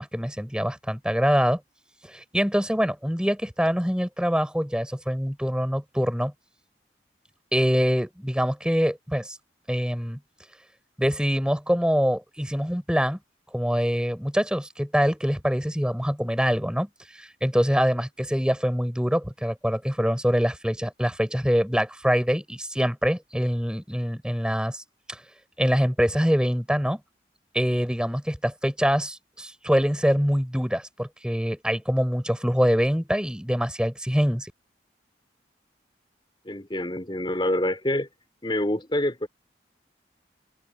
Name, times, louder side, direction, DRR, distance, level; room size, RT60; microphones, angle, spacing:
voice 1, 0.0-1.6 2.0-6.3 7.5-9.4 9.7-10.2 11.0-13.2 13.5-16.9 17.1-24.8 25.1-25.2 25.6-27.0 27.5-34.5, equal, 5° right, 5.6 m, -24 dB
voice 2, 36.5-38.1 38.4-39.3, left 1 dB, 25° left, 3.6 m, -26 dB
head